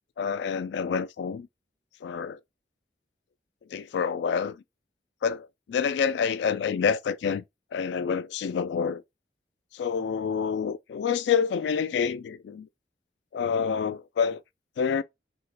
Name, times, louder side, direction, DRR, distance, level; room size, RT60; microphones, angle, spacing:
voice 1, 0.2-1.5 2.0-2.4 3.7-4.6 5.2-7.4 7.7-9.0 9.7-12.7 13.3-14.4 14.8-15.0, left 6 dB, 75° left, 0.3 m, -27 dB
2.9 x 2.4 x 3.2 m
head